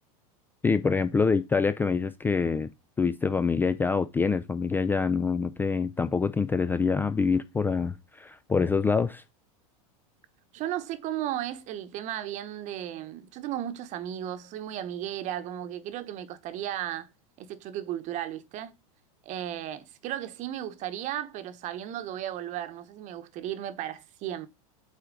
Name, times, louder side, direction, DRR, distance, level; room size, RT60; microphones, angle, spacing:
voice 1, 0.6-2.7 3.0-9.2, left 5 dB, 10° left, 0.3 m, -26 dB
voice 2, 10.5-17.1 17.4-18.7 19.2-24.5, right 11 dB, 40° right, 0.9 m, -35 dB
8.1 x 4.4 x 3.8 m
supercardioid pair, 130°, 18 cm